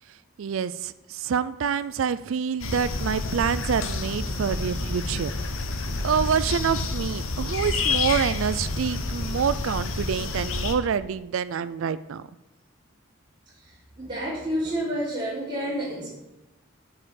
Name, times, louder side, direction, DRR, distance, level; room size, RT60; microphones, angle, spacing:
voice 1, 0.4-5.3 6.0-12.2, right 7 dB, 75° right, 14 dB, 0.4 m, -27 dB
sound 1, 2.6-10.8, left 3 dB, 80° left, 0.9 m, -29 dB
voice 2, 14.0-16.1, equal, 25° right, -8 dB, 3.4 m, -29 dB
8.7 x 4.9 x 6.4 m, 1.0 s
head